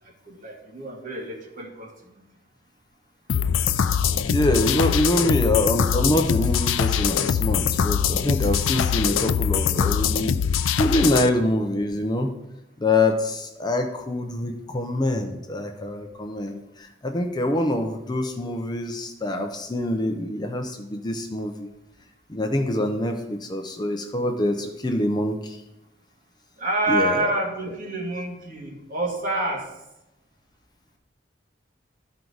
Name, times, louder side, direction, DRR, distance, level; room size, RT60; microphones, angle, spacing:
voice 1, 0.0-2.2 26.6-29.7, right 2 dB, 45° right, -1 dB, 1.9 m, -28 dB
sound 1, 3.3-11.3, left 7 dB, 85° left, 0.4 m, -23 dB
voice 2, 4.3-10.4 10.8-12.3 12.8-21.7 22.3-25.6 26.9-27.3, left 1 dB, 20° left, 4 dB, 0.6 m, -25 dB
12.5 x 4.6 x 3.9 m, 0.93 s
head